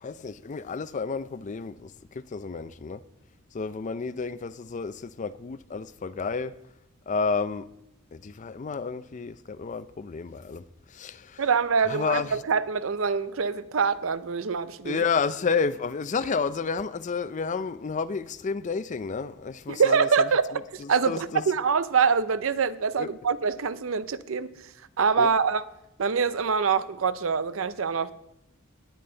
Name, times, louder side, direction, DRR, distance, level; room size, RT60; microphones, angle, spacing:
voice 1, 0.0-3.0 3.5-6.5 7.1-7.7 8.1-10.6 10.9-11.4 11.9-12.3 14.8-21.4 23.0-23.1 25.2-25.3, left 5 dB, 35° left, 0.4 m, -31 dB
voice 2, 11.4-15.0 19.7-24.5 25.0-25.6 26.0-28.1, right 5 dB, 70° right, 0.6 m, -25 dB
18.5 x 8.8 x 3.8 m
head